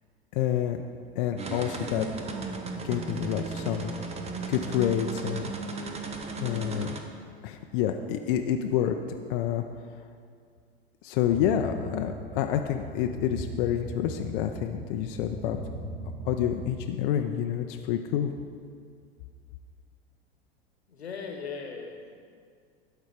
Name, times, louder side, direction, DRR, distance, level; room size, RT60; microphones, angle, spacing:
voice 1, 0.3-0.8 1.2-2.1 2.8-3.9 4.5-5.5 6.4-7.0 7.4-9.0 9.3-9.6 11.0-15.6 16.2-18.3, left 10 dB, 55° left, 5 dB, 0.6 m, -28 dB
sound 1, 1.4-7.0, right 3 dB, 20° right, 0.9 m, -35 dB
sound 2, 11.3-16.9, equal, ahead, 2.2 m, -39 dB
voice 2, 20.9-22.2, left 5 dB, 85° left, 3 dB, 1.2 m, -38 dB
11.5 x 4.5 x 5.0 m, 2.1 s
hypercardioid pair, 85°, 31 cm